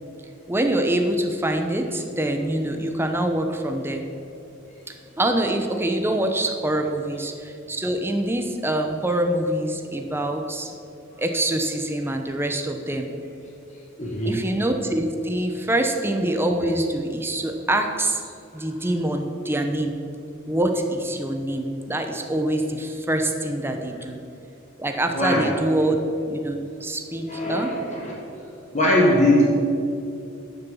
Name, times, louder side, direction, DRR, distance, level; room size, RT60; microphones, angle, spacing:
voice 1, 0.5-4.0 5.2-10.7 11.2-13.1 14.2-18.2 18.5-20.0 20.5-24.2 24.8-26.0 26.3-27.7, right 1 dB, 10° right, 5 dB, 0.8 m, -25 dB
voice 2, 14.0-14.4 25.1-25.5 27.3-28.4 28.7-29.4, left 1 dB, 35° left, -4 dB, 1.6 m, -21 dB
11.0 x 7.0 x 7.1 m, 2.6 s
head